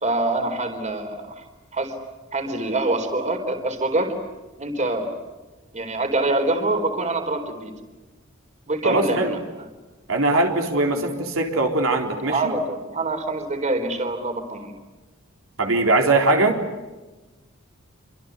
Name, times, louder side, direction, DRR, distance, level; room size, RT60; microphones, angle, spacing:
voice 1, 0.0-1.4 1.7-1.9 2.3-4.2 4.6-5.2 5.7-7.7 8.7-9.4 10.9-11.0 12.2-14.7, right 2 dB, 35° right, 6 dB, 4.1 m, -25 dB
voice 2, 8.8-9.4 10.1-12.4 15.6-16.6, right 2 dB, 80° right, 3 dB, 4.0 m, -21 dB
28.0 x 26.0 x 8.2 m, 1.2 s
head